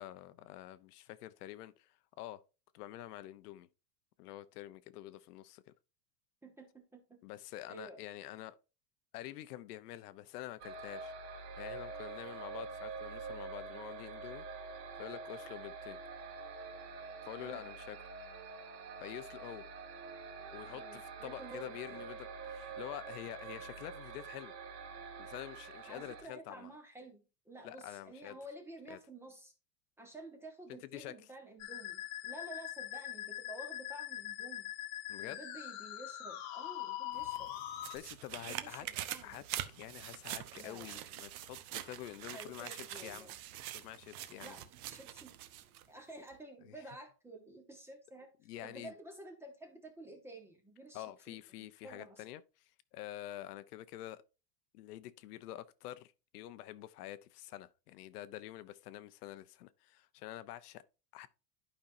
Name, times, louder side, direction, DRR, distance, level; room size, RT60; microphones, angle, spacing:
voice 1, 0.0-2.4 2.7-3.7 4.2-5.6 7.2-8.6 9.1-11.1 11.6-14.5 15.0-16.0 17.2-18.0 19.0-19.6 20.5-24.5 25.2-26.7 27.6-28.4 28.9-29.0 30.9-31.1 35.1-35.4 37.9-38.9 39.2-43.3 43.7-44.6 46.6-46.8 48.4-48.9 50.9-54.2 54.7-60.8 61.1-61.3, left 14 dB, 70° left, 0.8 m, -47 dB
voice 2, 6.4-7.2 7.7-8.0 13.7-13.8 17.4-17.7 20.7-22.0 25.9-29.5 30.0-34.7 35.2-37.5 38.4-39.4 40.6-41.0 42.3-43.4 44.4-45.3 45.9-48.3 48.6-51.4 51.8-52.2, right 2 dB, 5° right, 0.9 m, -51 dB
sound 1, 10.6-26.2, right 4 dB, 75° right, 2.7 m, -46 dB
Musical instrument, 31.6-38.0, left 13 dB, 40° left, 1.0 m, -42 dB
sound 2, 37.1-45.9 46.3-46.4, right 13 dB, 60° right, 1.0 m, -45 dB
11.5 x 5.4 x 2.6 m
supercardioid pair, 175°, 48 cm